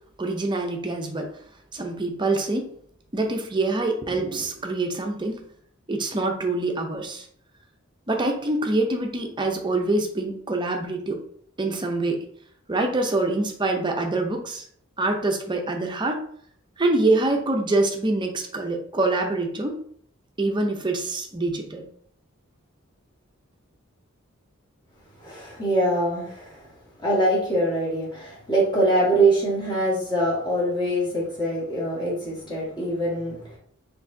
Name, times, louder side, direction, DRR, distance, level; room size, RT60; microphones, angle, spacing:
voice 1, 0.2-1.3 1.7-2.7 3.1-5.4 5.9-7.3 8.1-11.2 11.6-12.2 12.7-14.6 15.0-16.2 16.8-19.8 20.4-21.9, right 2 dB, 20° right, 3 dB, 0.6 m, -25 dB
voice 2, 25.2-26.7 27.0-33.6, right 1 dB, 20° left, -6 dB, 1.7 m, -24 dB
4.7 x 3.2 x 2.7 m, 0.62 s
head